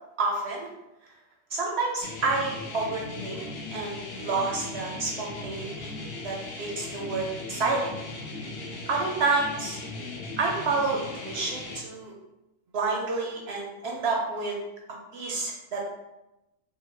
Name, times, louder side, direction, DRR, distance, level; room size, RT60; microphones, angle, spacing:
voice 1, 0.2-0.7 1.5-7.8 8.9-9.8 10.4-12.1 12.7-14.6 15.1-15.9, right 3 dB, 65° right, -1 dB, 0.6 m, -29 dB
sound 1, 2.0-11.8, left 3 dB, 65° left, 0.6 m, -38 dB
3.7 x 2.1 x 3.1 m, 0.95 s
omnidirectional pair, 1.5 m